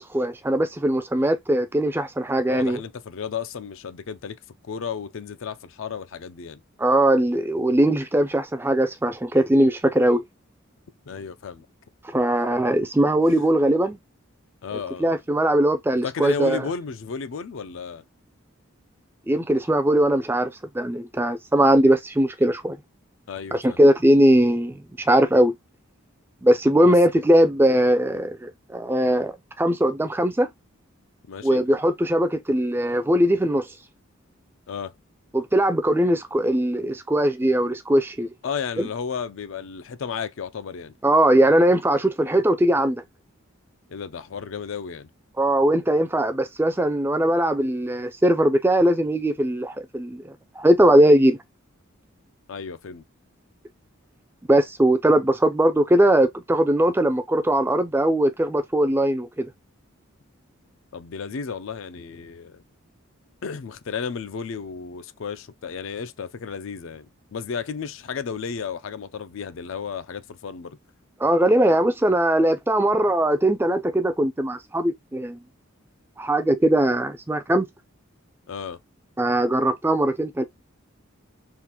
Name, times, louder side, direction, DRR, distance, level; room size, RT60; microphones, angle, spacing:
voice 1, 0.0-2.8 6.8-10.2 12.0-14.0 15.0-16.7 19.3-22.8 23.5-25.5 26.4-30.5 31.4-33.7 35.3-38.3 38.8-38.9 41.0-43.0 45.4-51.4 54.5-59.5 71.2-75.4 76.2-77.7 79.2-80.4, right 1 dB, 10° right, 0.3 m, -20 dB
voice 2, 2.5-4.4 4.6-6.6 11.1-11.7 14.6-15.1 15.9-18.0 23.3-23.8 26.8-26.9 31.3-31.6 34.7-34.9 38.4-40.9 43.9-45.1 52.5-53.0 60.9-62.6 63.4-70.8 78.5-78.8, left 6 dB, 65° left, 0.4 m, -33 dB
3.7 x 2.4 x 2.8 m
head